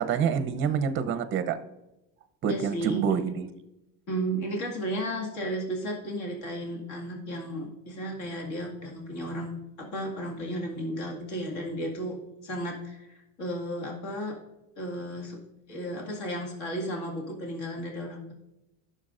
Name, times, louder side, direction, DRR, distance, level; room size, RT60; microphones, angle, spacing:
voice 1, 0.0-1.6 2.4-3.5, right 7 dB, 35° right, 11 dB, 0.7 m, -27 dB
voice 2, 2.5-3.1 4.1-12.2 12.4-14.4 14.8-15.4 15.7-18.3, equal, 50° left, 0 dB, 2.1 m, -34 dB
14.5 x 6.6 x 2.5 m, 0.94 s
cardioid pair, 150°, 36 cm